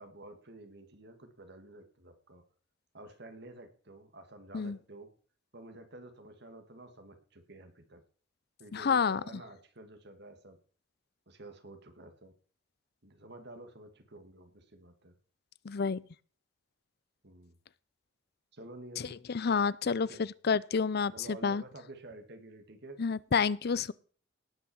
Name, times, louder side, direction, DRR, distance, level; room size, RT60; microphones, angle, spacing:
voice 1, 0.0-2.4 2.9-5.1 5.5-8.0 8.6-10.6 11.3-12.3 13.0-15.2 17.2-17.6 18.5-19.2 19.9-20.3 21.1-23.0, right 2 dB, 60° right, 7 dB, 2.2 m, -50 dB
voice 2, 8.7-9.2 15.6-16.0 19.3-21.6 23.0-23.9, left 5 dB, 55° left, 20 dB, 0.5 m, -29 dB
18.0 x 6.2 x 7.2 m, 0.44 s
head